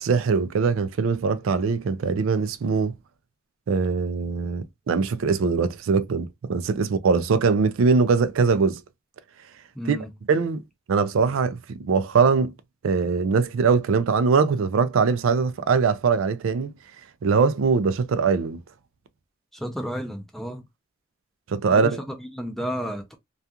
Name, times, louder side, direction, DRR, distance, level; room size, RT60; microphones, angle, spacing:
voice 1, 0.0-2.9 3.7-8.8 9.9-10.0 10.3-10.6 10.9-12.5 12.8-16.7 17.2-18.6 21.5-22.0, right 5 dB, 75° right, 0.4 m, -22 dB
voice 2, 9.8-10.1 19.5-20.6 21.7-23.1, equal, ahead, 0.4 m, -32 dB
2.3 x 2.3 x 2.7 m
head